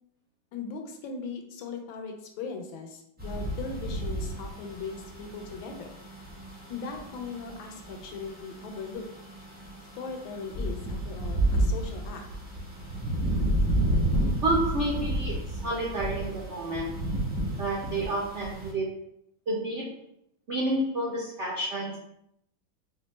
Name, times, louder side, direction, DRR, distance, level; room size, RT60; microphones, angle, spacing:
voice 1, 0.5-5.9 6.6-9.1 10.0-12.2, left 4 dB, 85° left, 4 dB, 1.4 m, -39 dB
sound 1, 3.2-18.7, right 1 dB, 10° right, 0.4 m, -31 dB
voice 2, 14.4-17.0 17.6-18.9 19.5-20.0 20.5-22.0, right 1 dB, 85° right, -4 dB, 0.6 m, -30 dB
4.5 x 2.1 x 3.1 m, 0.76 s
omnidirectional pair, 2.1 m